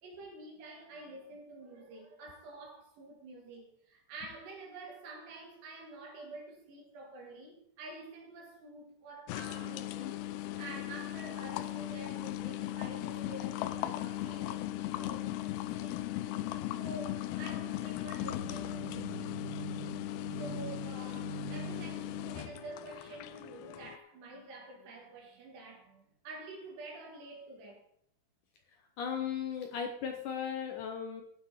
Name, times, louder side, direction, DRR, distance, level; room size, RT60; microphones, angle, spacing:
voice 1, 0.0-10.1 10.6-14.7 15.0-16.1 16.7-19.4 20.4-27.8, right 2 dB, 80° right, 4.9 m, -48 dB
sound 1, 9.3-24.0, left 13 dB, 85° left, 2.7 m, -38 dB
sound 2, 18.2-22.8, right 7 dB, 60° right, 1.8 m, -45 dB
voice 2, 29.0-31.2, left 7 dB, 70° left, 2.0 m, -36 dB
15.5 x 9.1 x 4.3 m
omnidirectional pair, 4.7 m